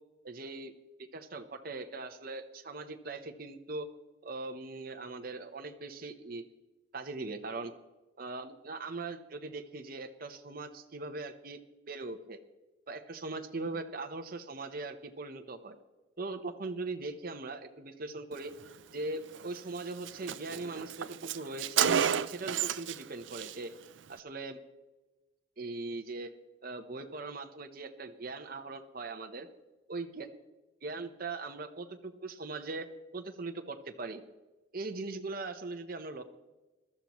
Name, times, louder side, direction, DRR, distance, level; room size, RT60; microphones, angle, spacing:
voice 1, 0.2-0.7 1.0-3.9 4.2-6.4 6.9-7.7 8.2-11.6 11.9-12.4 12.9-15.8 16.2-18.5 18.9-22.0 22.3-23.7 24.1-24.6 25.6-26.3 26.6-29.5 29.9-30.3 30.8-32.9 33.1-34.2 34.7-36.2, right 3 dB, 50° right, 5 dB, 0.9 m, -40 dB
Car, 19.3-19.5 19.8-19.9 20.1-23.0 23.3-23.5, right 8 dB, 75° right, 0.5 m, -31 dB
21.5 x 13.0 x 3.1 m, 1.1 s
head